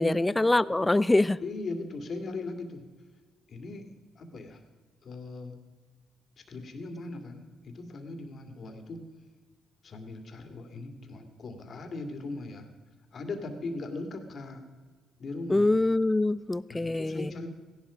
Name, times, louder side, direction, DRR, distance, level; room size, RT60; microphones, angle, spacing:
voice 1, 0.0-1.4 15.5-17.3, left 2 dB, 15° left, 19 dB, 0.5 m, -24 dB
voice 2, 1.4-2.8 3.5-3.9 4.1-4.6 5.0-5.6 6.5-9.0 9.8-12.7 13.1-14.6 15.2-15.7 16.7-17.5, left 2 dB, 55° left, 6 dB, 2.4 m, -38 dB
16.0 x 11.0 x 5.1 m, 1.4 s
supercardioid pair, 70°, 0 cm